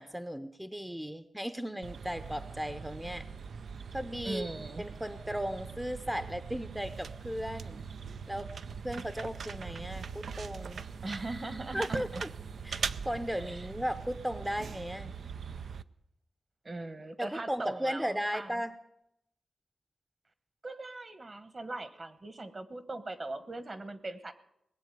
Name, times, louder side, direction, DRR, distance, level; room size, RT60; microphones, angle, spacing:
voice 1, 0.0-3.3 3.9-7.8 8.3-8.5 8.8-10.8 11.7-12.3 12.6-15.1 17.2-18.7, equal, 5° right, 11 dB, 0.7 m, -36 dB
sound 1, 1.8-15.8, right 6 dB, 85° right, 0.5 m, -41 dB
voice 2, 4.2-4.8 11.0-12.2 13.3-13.7 16.6-18.6 20.6-24.3, right 2 dB, 40° right, 13 dB, 1.3 m, -40 dB
19.5 x 7.7 x 9.3 m, 0.78 s
wide cardioid pair, 105°, 0 cm